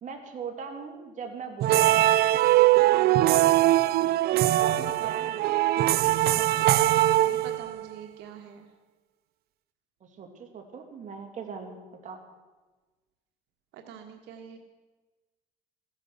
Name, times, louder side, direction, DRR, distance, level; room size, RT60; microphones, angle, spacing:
voice 1, 0.0-2.2 4.3-5.5 10.0-11.8 12.0-12.2, right 6 dB, 45° right, 3 dB, 2.8 m, -40 dB
sound 1, 1.6-7.9, right 15 dB, 70° right, 0.5 m, -22 dB
voice 2, 2.9-3.3 7.2-8.7 13.7-14.6, right 7 dB, 85° right, 4 dB, 1.5 m, -45 dB
16.0 x 10.5 x 7.9 m, 1.3 s
cardioid pair, 110°, 17 cm